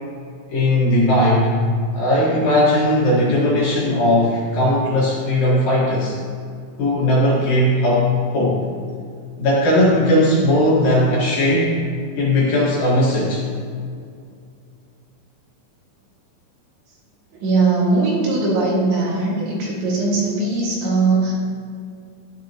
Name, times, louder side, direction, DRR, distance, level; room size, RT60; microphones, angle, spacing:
voice 1, 0.5-1.6 1.9-6.2 6.8-8.7 9.4-11.8 12.2-13.4, left 1 dB, 60° left, -6 dB, 2.8 m, -17 dB
voice 2, 17.3-21.3, right 3 dB, 75° right, -4 dB, 4.1 m, -20 dB
12.0 x 10.0 x 2.9 m, 2.3 s
omnidirectional pair, 5.3 m